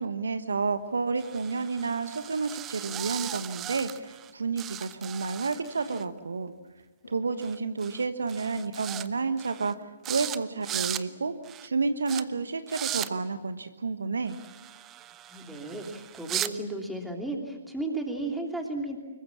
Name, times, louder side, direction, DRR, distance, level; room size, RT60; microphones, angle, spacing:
voice 1, 0.0-6.5 7.1-11.4 11.6-14.4, right 4 dB, 65° right, 11 dB, 1.2 m, -30 dB
sound 1, 1.2-4.3 4.6-6.0 7.4-7.6 7.8-8.0 8.3-9.1 9.4-9.7 10.0-10.4 10.6-11.0 11.4-11.7 12.1-12.2 12.7-13.1 14.3-16.5, right 12 dB, 20° right, 0.7 m, -37 dB
sound 2, 5.7-6.6 7.0-7.6 8.4-9.0 9.3-10.4 10.7-11.3 12.1-12.6, left 5 dB, 65° left, 6.0 m, -53 dB
voice 2, 15.3-19.0, right 2 dB, 5° right, 1 dB, 3.1 m, -34 dB
25.0 x 22.0 x 7.3 m, 1.2 s
figure-of-eight pair, 125°, 0 cm